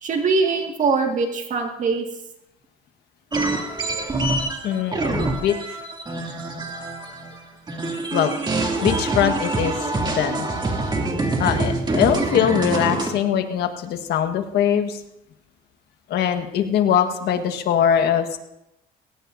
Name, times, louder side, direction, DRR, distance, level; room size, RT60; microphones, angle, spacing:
voice 1, 0.0-2.1, right 4 dB, 50° right, 3 dB, 2.0 m, -22 dB
sound 1, 3.3-7.4 7.7-13.1, right 2 dB, 25° right, 2.6 m, -25 dB
voice 2, 4.6-5.8 8.1-8.3 8.8-10.5 11.4-15.0 16.1-18.4, left 9 dB, 75° left, 7 dB, 1.5 m, -22 dB
20.0 x 17.5 x 2.7 m, 0.88 s
cardioid pair, 110°, 17 cm